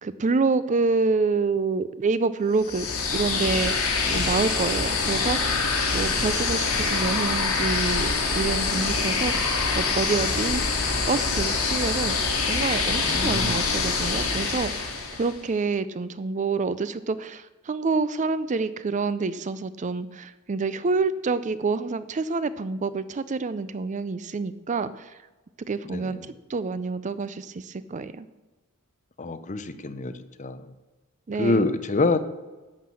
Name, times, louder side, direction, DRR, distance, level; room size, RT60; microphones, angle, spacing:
voice 1, 0.0-2.9 3.1-5.6 5.9-9.5 9.8-10.6 11.1-12.2 12.5-25.1 25.7-28.3 31.3-31.7, right 4 dB, 35° right, 15 dB, 0.4 m, -27 dB
sound 1, 2.6-15.4, left 4 dB, 70° left, 2.5 m, -25 dB
voice 2, 4.1-4.4 13.0-13.6 25.8-26.2 29.2-30.1 30.4-30.7 31.4-32.2, left 2 dB, 35° left, 11 dB, 0.7 m, -26 dB
11.0 x 6.0 x 7.6 m, 1.2 s
head